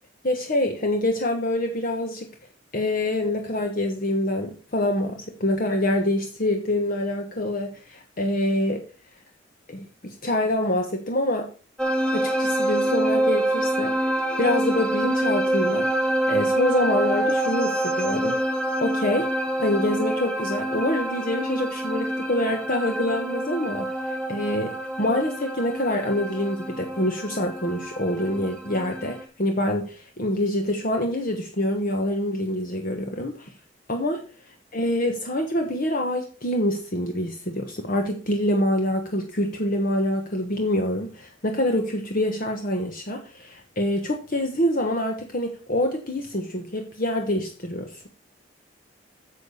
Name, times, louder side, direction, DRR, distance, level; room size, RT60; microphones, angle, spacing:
voice 1, 0.2-2.3 2.7-8.8 9.7-11.5 12.1-14.1 14.4-15.9 16.3-18.4 18.8-19.3 19.6-24.7 25.0-33.5 33.9-34.2 34.7-48.1, left 1 dB, 45° left, 4 dB, 1.3 m, -26 dB
sound 1, 11.8-29.2, right 1 dB, 5° left, 1.3 m, -26 dB
8.9 x 6.8 x 5.6 m, 0.37 s
head